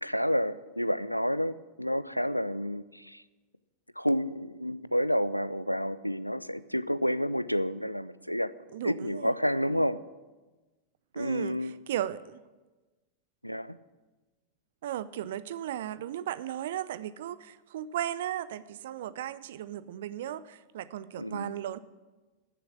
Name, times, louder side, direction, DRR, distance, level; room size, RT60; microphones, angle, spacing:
voice 1, 0.0-3.2 4.0-8.5 8.8-10.0 11.1-11.7 13.4-13.8 21.2-21.5, equal, 90° left, 17 dB, 0.4 m, -30 dB
voice 2, 8.7-9.3 11.1-12.4 14.8-21.8, right 11 dB, 55° right, 17 dB, 0.5 m, -36 dB
13.5 x 7.2 x 8.6 m, 1.2 s
figure-of-eight pair, 90°, 0 cm